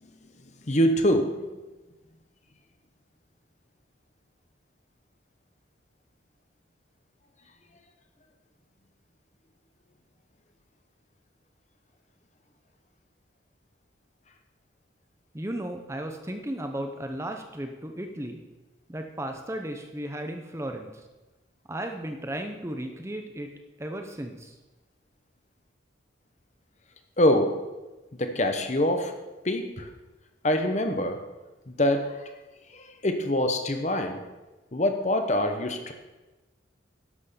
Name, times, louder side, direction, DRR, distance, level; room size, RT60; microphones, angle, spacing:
voice 1, 0.6-1.4 27.2-27.5 28.1-29.1 29.4-29.9 30.4-31.2 31.7-32.3 32.7-34.2 34.7-35.9, left 1 dB, 35° left, 6 dB, 1.0 m, -24 dB
voice 2, 15.3-18.4 18.9-21.0 21.7-23.5 23.8-24.5, right 1 dB, 15° right, 5 dB, 0.7 m, -35 dB
11.0 x 6.2 x 6.9 m, 1.1 s
head